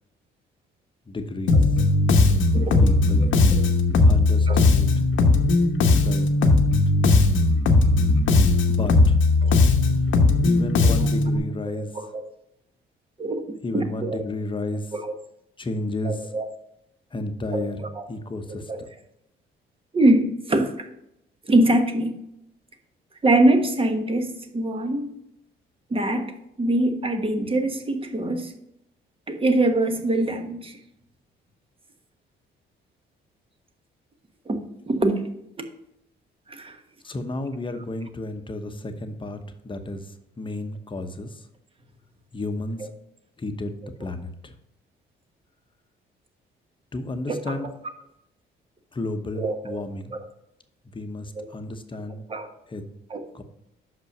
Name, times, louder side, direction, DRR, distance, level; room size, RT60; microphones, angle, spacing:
voice 1, 1.1-1.6 2.8-3.3 4.0-4.9 6.0-6.6 8.7-9.2 10.4-11.9 13.6-14.8 15.6-16.2 17.1-18.6 37.0-39.4 39.6-40.0 40.4-41.3 42.3-42.8 43.4-43.7 44.0-44.5 46.9-47.7 48.9-50.1 50.9-52.2 52.7-52.8 53.3-53.4, left 2 dB, 25° left, 0.9 m, -32 dB
Bass guitar, 1.5-11.4, left 3 dB, 75° left, 1.0 m, -18 dB
voice 2, 2.5-2.8 3.2-3.3 3.6-3.7 4.5-4.6 9.4-9.6 10.8-10.9 11.7-12.2 13.2-13.4 13.7-14.2 14.9-15.1 16.0-16.5 17.5-18.1 18.5-18.8 19.9-20.9 21.4-22.1 23.2-25.1 25.9-26.3 26.6-28.5 29.3-30.8 34.5-35.3 36.5-36.8 47.3-47.6 49.4-49.8 50.1-50.2 51.3-51.4 52.3-52.5 53.1-53.2, right 1 dB, 25° right, 1.2 m, -24 dB
6.2 x 5.3 x 5.4 m
cardioid pair, 90°, 20 cm